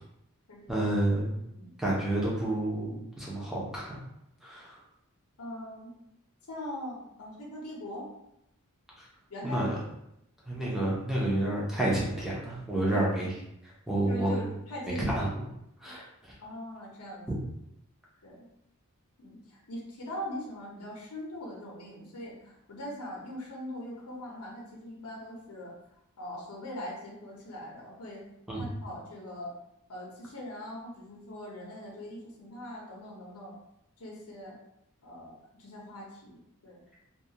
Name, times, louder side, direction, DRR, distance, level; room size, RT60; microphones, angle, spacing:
voice 1, 0.7-1.4 1.8-4.0 4.4-4.8 9.4-9.7 10.5-13.3 13.9-14.5 14.9-15.3 15.8-16.0 28.5-28.7, right 1 dB, ahead, -6 dB, 0.6 m, -29 dB
voice 2, 1.4-1.7 5.4-6.0 6.5-8.1 9.3-9.7 10.6-10.9 12.9-13.3 14.1-15.2 16.4-17.3 18.2-18.5 19.2-25.7 26.2-28.3 28.5-29.5 29.9-33.5 34.0-34.6 35.0-36.8, left 1 dB, 75° left, -2 dB, 0.7 m, -41 dB
2.3 x 2.3 x 2.8 m, 0.81 s
head